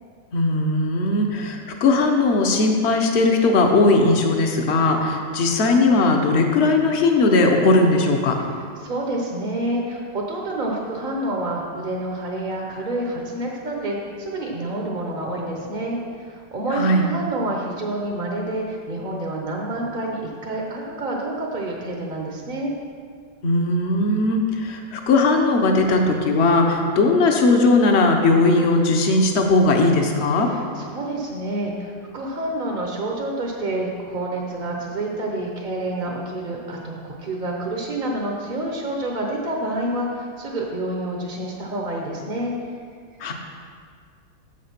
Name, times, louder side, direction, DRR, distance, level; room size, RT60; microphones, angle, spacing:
voice 1, 0.3-8.4 16.7-17.0 23.4-30.5 43.2-43.3, left 2 dB, 50° left, 3 dB, 0.9 m, -18 dB
voice 2, 8.5-22.7 30.4-42.5, right 1 dB, 40° right, -1 dB, 0.7 m, -28 dB
7.7 x 6.5 x 5.9 m, 2.1 s
omnidirectional pair, 2.0 m